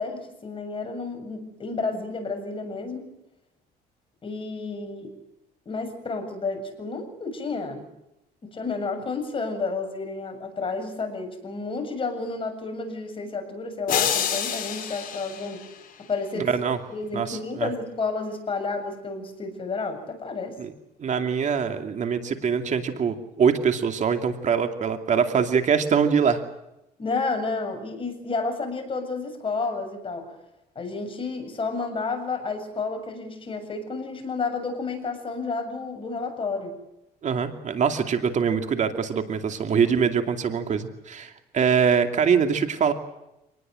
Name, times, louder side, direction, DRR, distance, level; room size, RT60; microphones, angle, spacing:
voice 1, 0.0-3.1 4.2-5.1 5.7-7.9 8.4-15.6 16.0-16.5 16.9-20.6 27.0-30.3 30.8-36.7, left 4 dB, 30° left, 5 dB, 7.5 m, -31 dB
sound 1, 13.9-16.2, left 9 dB, 55° left, 4.6 m, -28 dB
voice 2, 16.4-16.8 17.1-17.7 20.6-20.7 21.0-26.4 37.2-42.9, right 6 dB, 45° right, 6 dB, 2.6 m, -23 dB
27.0 x 20.0 x 7.8 m, 0.88 s
cardioid pair, 110°, 17 cm